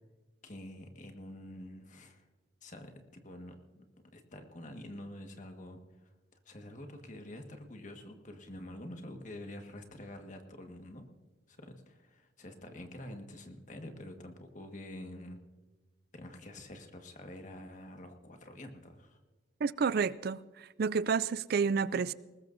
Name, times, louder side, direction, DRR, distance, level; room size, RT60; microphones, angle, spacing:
voice 1, 0.4-2.3 2.6-3.9 4.1-6.1 6.4-11.1 11.5-15.4 16.1-19.2, left 1 dB, 40° left, 1.7 m, -47 dB
voice 2, 19.6-22.1, right 5 dB, 55° right, 0.4 m, -30 dB
20.5 x 19.5 x 2.7 m
head